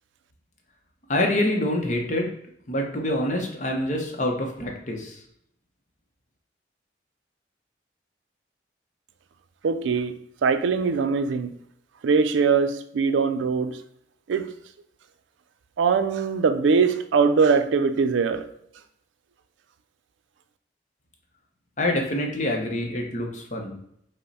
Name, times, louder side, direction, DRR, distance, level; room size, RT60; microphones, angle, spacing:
voice 1, 1.1-2.3 2.7-5.2 21.8-23.8, left 1 dB, 40° left, 0.7 m, -26 dB
voice 2, 9.6-11.6 12.0-13.8 14.3-14.5 15.8-18.5, right 5 dB, 85° right, 0.4 m, -22 dB
5.4 x 2.1 x 4.0 m
head